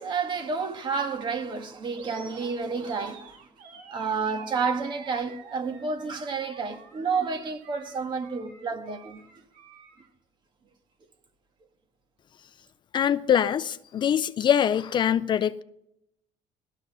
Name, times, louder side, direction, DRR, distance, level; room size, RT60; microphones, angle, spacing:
voice 1, 0.0-3.3 3.9-9.2, right 5 dB, 35° right, 1.6 m, -30 dB
Animal, 1.9-10.1, right 5 dB, 85° right, 2.3 m, -50 dB
voice 2, 12.9-15.6, left 9 dB, 35° left, 0.5 m, -23 dB
18.5 x 13.0 x 5.5 m
cardioid pair, 150°, 13 cm